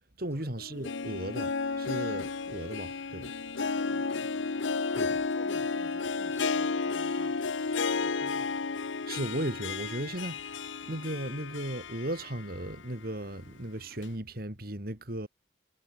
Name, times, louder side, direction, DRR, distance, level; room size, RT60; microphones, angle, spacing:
voice 1, 0.2-3.3 5.0-5.1 9.1-15.3, right 1 dB, 50° right, 2.7 m, -36 dB
Harp, 0.6-12.7 13.1-13.2 14.0-14.1, left 4 dB, 80° left, 0.8 m, -32 dB
voice 2, 3.5-7.4 7.9-8.6, left 1 dB, 15° left, 5.7 m, -54 dB
head